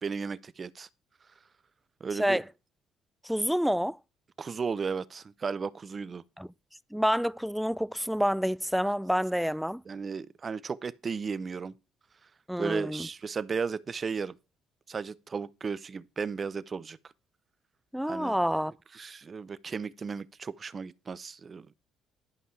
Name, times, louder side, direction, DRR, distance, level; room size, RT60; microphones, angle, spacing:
voice 1, 0.0-0.9 2.0-2.4 4.4-6.2 9.9-11.7 12.6-14.4 14.9-17.0 18.1-18.3 18.9-21.7, right 5 dB, 40° right, 0.6 m, -35 dB
voice 2, 3.2-4.0 6.4-6.5 6.9-9.8 12.5-13.1 17.9-18.7, equal, ahead, 0.4 m, -28 dB
11.5 x 5.4 x 4.8 m
supercardioid pair, 65°, 0 cm